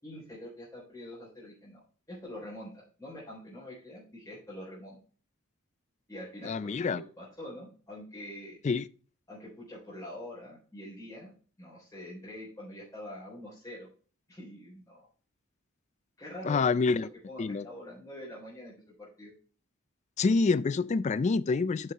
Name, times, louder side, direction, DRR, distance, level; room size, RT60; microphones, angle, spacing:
voice 1, 0.0-1.8 2.1-5.0 6.1-8.6 9.3-11.3 11.6-13.9 14.3-15.1 16.2-17.0 17.3-19.3, left 1 dB, 15° left, 4.0 m, -45 dB
voice 2, 6.4-7.0 8.6-8.9 16.4-17.1 17.4-17.6 20.2-21.9, left 4 dB, 35° left, 0.3 m, -27 dB
9.1 x 6.5 x 3.4 m
head